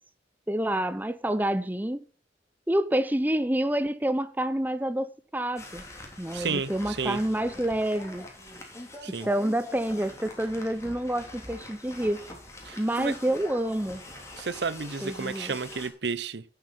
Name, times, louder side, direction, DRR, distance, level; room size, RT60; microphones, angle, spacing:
voice 1, 0.5-2.0 2.7-5.8 6.2-8.3 9.2-12.2 12.8-14.0 15.0-15.5, right 1 dB, 10° right, 0.7 m, -28 dB
sound 1, 5.6-15.9, left 1 dB, 15° left, 3.2 m, -44 dB
voice 2, 6.3-7.2 9.0-9.3 12.6-13.1 14.4-16.4, right 5 dB, 80° right, 0.8 m, -32 dB
11.5 x 8.0 x 7.4 m
head